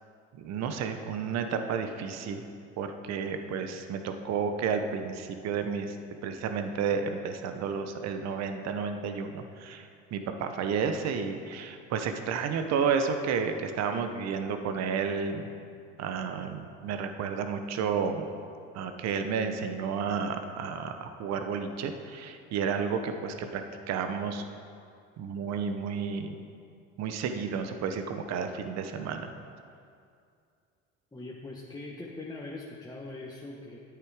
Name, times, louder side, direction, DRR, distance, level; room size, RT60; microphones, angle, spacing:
voice 1, 0.3-2.4 2.8-6.0 6.2-15.5 16.0-18.3 18.7-24.4 25.2-26.3 27.0-29.3, right 6 dB, 60° right, 7 dB, 1.1 m, -31 dB
voice 2, 31.1-33.8, left 2 dB, 10° left, -4 dB, 1.3 m, -41 dB
10.0 x 8.2 x 5.0 m, 2.4 s
supercardioid pair, 75°, 30 cm